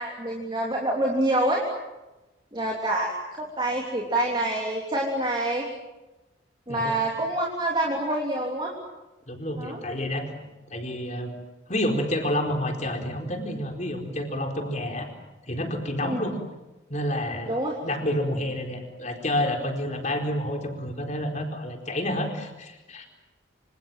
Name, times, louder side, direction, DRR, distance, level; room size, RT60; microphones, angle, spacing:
voice 1, 0.0-1.6 2.5-5.7 6.7-8.7 9.6-9.8 16.0-16.2 17.5-17.8, right 1 dB, 25° right, -1 dB, 3.4 m, -26 dB
voice 2, 6.7-7.0 9.3-10.3 10.7-11.3 11.7-15.1 15.5-16.4 16.9-23.0, left 1 dB, 35° left, 3 dB, 4.4 m, -29 dB
27.5 x 27.0 x 7.6 m, 1.1 s
head